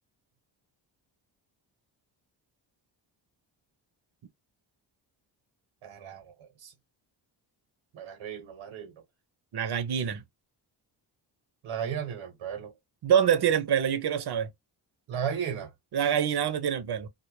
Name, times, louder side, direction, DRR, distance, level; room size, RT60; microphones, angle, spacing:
voice 1, 5.8-6.7 7.9-9.0 11.6-12.7 15.1-15.7, right 8 dB, 80° right, 0.9 m, -35 dB
voice 2, 9.5-10.2 13.0-14.5 15.9-17.1, right 8 dB, 50° right, 0.7 m, -25 dB
2.1 x 2.0 x 3.1 m
supercardioid pair, 45°, 50 cm